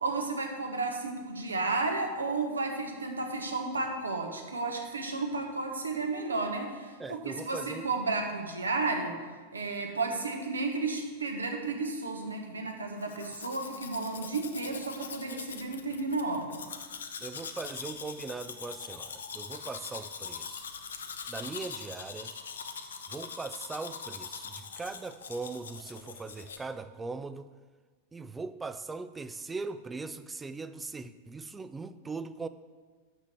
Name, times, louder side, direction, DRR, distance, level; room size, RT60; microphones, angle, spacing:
voice 1, 0.0-9.2 9.5-16.6, right 3 dB, 75° right, 3 dB, 1.1 m, -33 dB
voice 2, 7.0-7.9 17.2-20.7 21.3-22.3 23.1-27.5 28.1-32.5, right 4 dB, 15° right, 12 dB, 0.4 m, -40 dB
Domestic sounds home sounds, 13.0-26.6, left 6 dB, 65° left, 0.6 m, -42 dB
6.6 x 6.1 x 6.7 m, 1.4 s
figure-of-eight pair, 90°, 0 cm